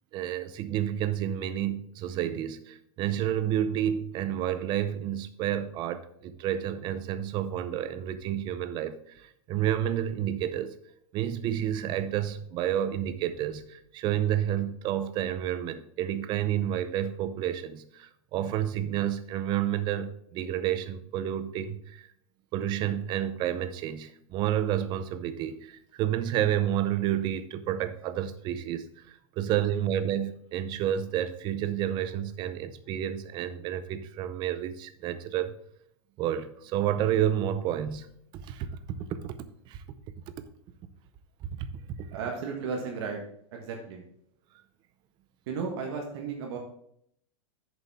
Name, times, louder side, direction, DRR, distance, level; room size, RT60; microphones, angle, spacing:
voice 1, 0.1-10.8 11.1-22.1 22.5-28.9 29.4-35.5 36.2-38.1 38.5-38.7 39.2-39.3 39.7-39.8 41.6-41.7, right 11 dB, 30° right, 0.6 m, -30 dB
voice 2, 42.1-43.2 43.5-44.0 45.5-46.6, right 5 dB, 55° right, 1.5 m, -34 dB
8.7 x 6.8 x 3.6 m
supercardioid pair, 160°, 17 cm